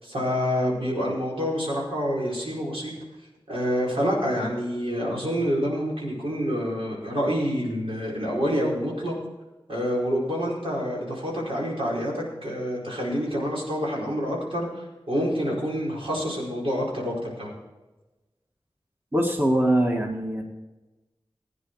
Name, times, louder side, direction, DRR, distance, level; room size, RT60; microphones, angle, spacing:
voice 1, 0.0-2.9 3.5-9.1 9.7-17.5, equal, 80° right, -4 dB, 5.0 m, -27 dB
voice 2, 19.1-20.4, right 1 dB, 25° right, 0 dB, 1.8 m, -22 dB
16.5 x 9.6 x 4.7 m, 1.1 s
wide cardioid pair, 70°, 9 cm